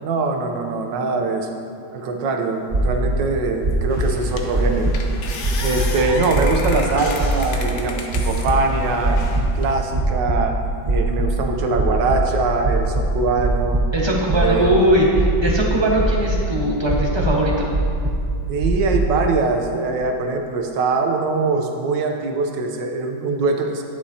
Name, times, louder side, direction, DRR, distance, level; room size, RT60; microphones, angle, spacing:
voice 1, 0.0-1.5 1.9-4.9 5.6-9.2 9.5-10.6 10.9-13.8 14.3-14.7 18.5-23.8, right 3 dB, 85° right, 4 dB, 1.5 m, -22 dB
sound 1, 2.7-3.1 3.6-4.1 4.5-5.1 5.4-5.9 6.3-6.8 7.2-7.6 8.1-8.6 9.0-9.5 9.9-10.4 10.8-11.4 11.7-12.2 12.6-13.8 14.3-14.7 15.1-15.7 15.9-16.4 16.8-17.3 17.7-18.2 18.6-19.0, right 1 dB, 35° right, 0.7 m, -21 dB
sound 2, 3.7-3.8 4.4-4.6 4.9-8.5 9.1-9.7, left 4 dB, 55° left, 0.9 m, -31 dB
sound 3, 3.9-9.4, left 2 dB, 80° left, 1.8 m, -38 dB
voice 2, 13.9-17.7, right 1 dB, 15° right, -4 dB, 1.2 m, -19 dB
11.5 x 10.5 x 2.8 m, 2.4 s
omnidirectional pair, 1.9 m